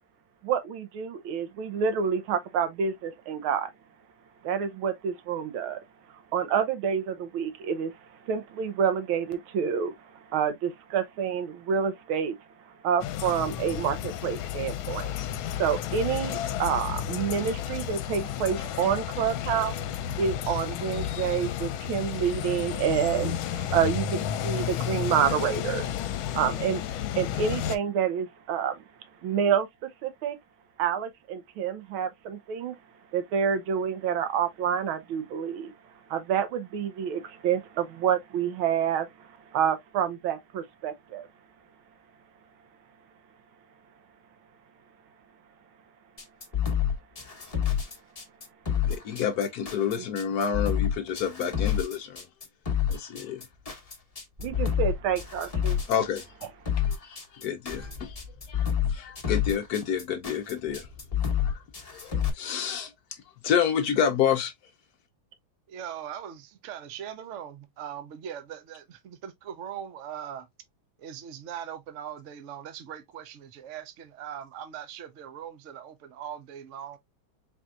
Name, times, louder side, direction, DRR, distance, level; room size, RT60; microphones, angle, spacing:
voice 1, 0.4-3.7 4.4-5.8 6.3-8.0 8.2-12.4 12.7-15.2 15.6-19.7 20.2-26.8 27.2-28.8 29.2-29.7 30.0-30.4 30.8-32.8 33.1-35.7 36.1-41.3 54.4-55.8, right 8 dB, 85° right, 1.6 m, -28 dB
sound 1, 13.0-27.8, left 10 dB, 85° left, 1.4 m, -32 dB
sound 2, 46.2-62.3, left 9 dB, 25° left, 0.8 m, -28 dB
voice 2, 48.9-52.3 52.9-53.4 55.9-56.3 56.8-58.2 58.5-60.9 61.4-61.6 61.9-62.9 63.4-64.5, left 8 dB, 70° left, 0.9 m, -29 dB
sound 3, 53.5-62.9, left 3 dB, 30° right, 1.2 m, -48 dB
voice 3, 65.7-70.5 71.0-77.0, right 9 dB, 60° right, 0.7 m, -40 dB
4.4 x 4.1 x 2.4 m
omnidirectional pair, 2.2 m